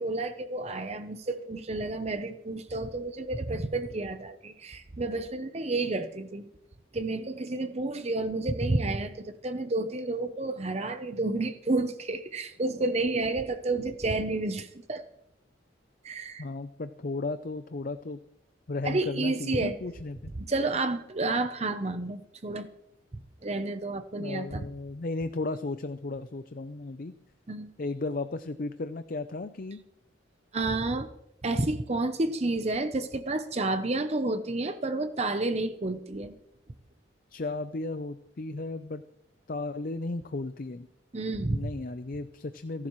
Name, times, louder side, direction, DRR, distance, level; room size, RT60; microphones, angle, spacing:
voice 1, 0.0-6.5 6.9-15.0 16.0-16.4 18.8-19.8 20.4-22.7 23.4-24.6 27.5-27.7 30.5-31.1 31.4-36.3 41.1-41.6, right 2 dB, 35° right, 9 dB, 0.7 m, -30 dB
voice 2, 16.4-18.2 18.7-20.3 24.2-27.1 27.8-29.8 37.3-39.0 39.5-40.9 41.4-42.9, left 2 dB, 45° left, 11 dB, 0.5 m, -35 dB
30.0 x 11.5 x 3.1 m, 0.83 s
head